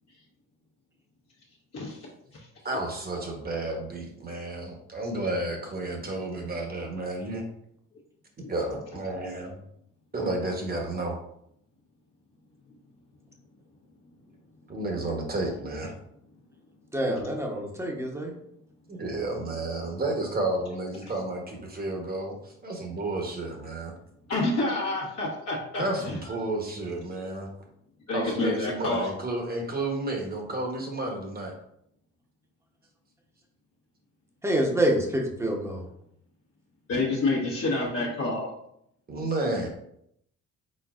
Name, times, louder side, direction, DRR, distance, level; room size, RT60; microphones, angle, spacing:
voice 1, 1.7-2.5 8.4-8.5 24.3-26.1 28.1-29.1 36.9-38.5, left 2 dB, 60° left, -5 dB, 1.1 m, -28 dB
voice 2, 2.6-7.4 8.5-9.6 10.1-11.2 14.7-15.9 18.9-23.9 25.8-27.5 28.1-31.5 39.1-39.7, right 2 dB, 30° right, 1 dB, 1.1 m, -31 dB
voice 3, 16.9-18.3 34.4-35.8, right 1 dB, 10° right, 0 dB, 0.9 m, -26 dB
4.3 x 3.8 x 2.4 m, 0.74 s
cardioid pair, 90°, 30 cm